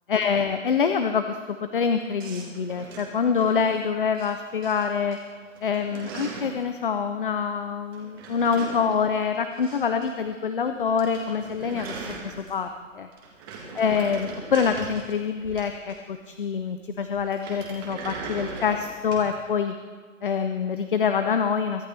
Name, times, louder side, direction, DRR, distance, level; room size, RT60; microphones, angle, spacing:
voice 1, 0.1-5.2 5.6-11.9 12.2-12.7 12.9-13.1 13.7-19.7 20.2-21.9, left 6 dB, 40° left, 8 dB, 0.6 m, -25 dB
sound 1, 2.2-4.3 4.6-5.2 5.4-6.6 7.9-10.1 10.3-10.4 10.7-10.8 11.0-12.7 13.1-16.2 17.3-19.3, right 4 dB, 15° right, 1.6 m, -39 dB
23.0 x 11.5 x 3.4 m, 1.5 s
hypercardioid pair, 175°, 40 cm